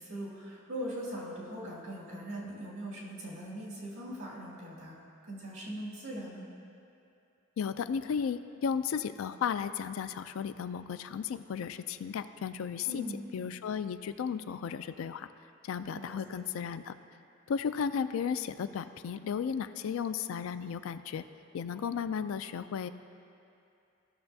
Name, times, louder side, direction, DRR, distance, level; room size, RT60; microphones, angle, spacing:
voice 1, 0.0-6.4 12.9-13.2 15.9-16.4, equal, 75° right, -6 dB, 2.1 m, -41 dB
voice 2, 7.6-13.0 13.3-15.3 15.6-16.9 17.5-21.2 21.5-22.9, left 7 dB, 80° left, 12 dB, 0.3 m, -34 dB
15.0 x 6.8 x 2.7 m, 2.6 s
head